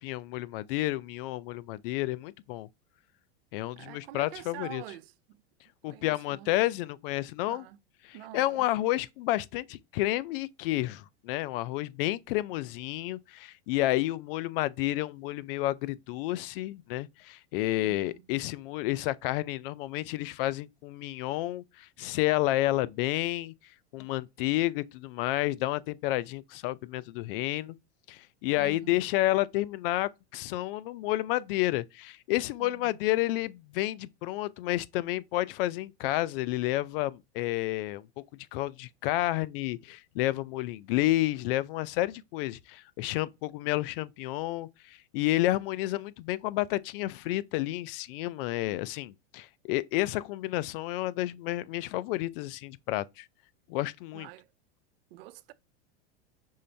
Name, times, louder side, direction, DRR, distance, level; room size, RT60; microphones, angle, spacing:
voice 1, 0.0-2.7 3.5-4.8 5.8-7.7 8.1-23.5 23.9-27.8 28.1-38.1 38.5-53.3 53.7-54.3, left 17 dB, 55° left, 0.5 m, -30 dB
voice 2, 3.8-5.4 5.9-6.5 7.5-7.8 8.1-8.7 17.8-18.2 28.6-29.0 32.6-33.0 54.1-54.5 55.1-55.5, right 15 dB, 60° right, 0.5 m, -46 dB
5.5 x 2.5 x 3.2 m
supercardioid pair, 130°, 33 cm